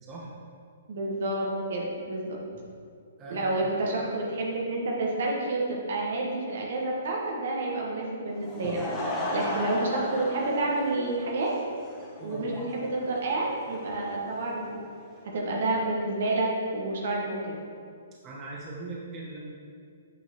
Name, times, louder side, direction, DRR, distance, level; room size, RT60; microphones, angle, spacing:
voice 1, 0.9-2.4 3.3-8.8 9.2-11.5 12.2-14.8 15.2-17.5, right 2 dB, 60° right, -2 dB, 1.4 m, -29 dB
voice 2, 3.2-3.7 8.6-8.8 12.2-12.5 18.2-19.4, right 3 dB, 25° right, -4 dB, 1.2 m, -40 dB
Laughter / Crowd, 8.3-15.2, left 1 dB, 15° left, 1.5 m, -36 dB
8.8 x 6.0 x 3.0 m, 2.3 s
figure-of-eight pair, 120°, 0 cm